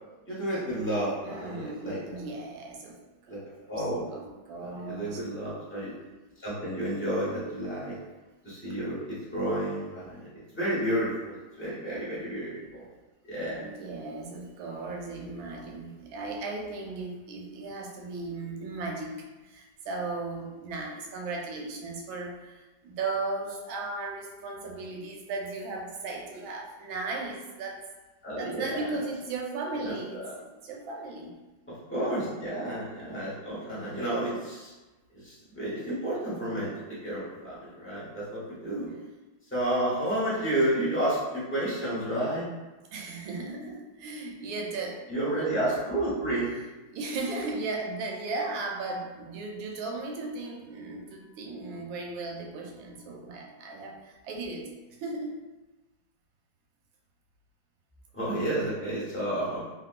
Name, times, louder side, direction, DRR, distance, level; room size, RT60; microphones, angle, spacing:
voice 1, 0.3-2.3 3.3-3.4 3.7-4.0 4.6-5.9 6.4-8.0 8.4-12.8 13.2-13.6 28.2-29.0 29.8-30.3 31.7-34.7 35.1-38.9 39.5-42.5 45.1-46.5 58.1-59.7, right 1 dB, 20° left, -10 dB, 0.3 m, -31 dB
voice 2, 1.2-3.0 3.3-3.5 4.1-5.2 13.6-27.8 28.4-31.3 42.9-45.0 46.8-54.7 55.0-55.3, right 3 dB, 85° right, 0 dB, 1.4 m, -36 dB
2.9 x 2.8 x 2.4 m, 1.1 s
omnidirectional pair, 2.1 m